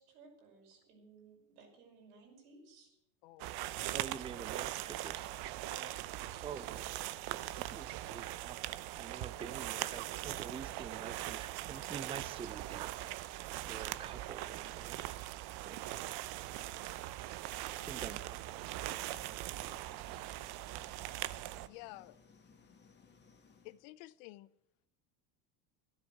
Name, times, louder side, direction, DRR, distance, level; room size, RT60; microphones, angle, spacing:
voice 1, 0.0-3.0 5.6-6.5, right 4 dB, 90° right, 5.7 m, -58 dB
sound 1, 3.4-21.7, right 15 dB, 60° right, 0.8 m, -41 dB
voice 2, 3.9-5.3 6.4-6.9 7.3-15.1 15.6-15.8 17.5-18.4, right 6 dB, 15° right, 0.4 m, -48 dB
sound 2, 18.8-23.8, left 5 dB, 25° left, 1.8 m, -63 dB
voice 3, 21.7-22.2 23.6-24.5, left 18 dB, 70° left, 0.7 m, -51 dB
13.0 x 11.5 x 6.5 m
supercardioid pair, 105°, 44 cm